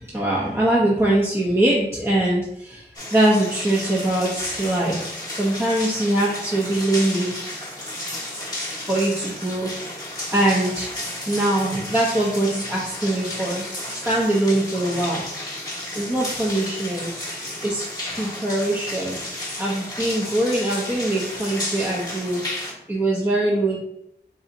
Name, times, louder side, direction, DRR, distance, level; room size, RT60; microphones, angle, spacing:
voice 1, 0.1-2.8 3.1-5.0 5.4-7.3 8.9-9.7 10.3-10.9 11.3-13.6 13.9-15.2 15.9-17.1 17.6-17.8 18.1-19.2 19.6-22.4 22.9-23.8, right 1 dB, 15° right, -5 dB, 1.0 m, -22 dB
sound 1, 2.9-22.7, left 1 dB, 20° left, 1.3 m, -32 dB
3.9 x 3.2 x 4.1 m, 0.75 s
wide cardioid pair, 60°, 18 cm